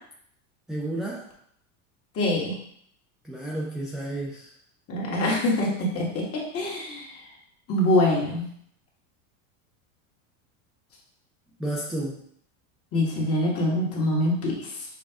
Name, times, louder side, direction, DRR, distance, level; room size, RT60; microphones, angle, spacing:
voice 1, 0.7-1.3 3.2-4.5 11.6-12.2, right 1 dB, ahead, -5 dB, 0.5 m, -31 dB
voice 2, 2.1-2.5 4.9-7.2 7.7-8.5 12.9-14.8, left 1 dB, 35° left, -2 dB, 1.5 m, -25 dB
6.4 x 2.3 x 3.5 m, 0.66 s
supercardioid pair, 120°, 43 cm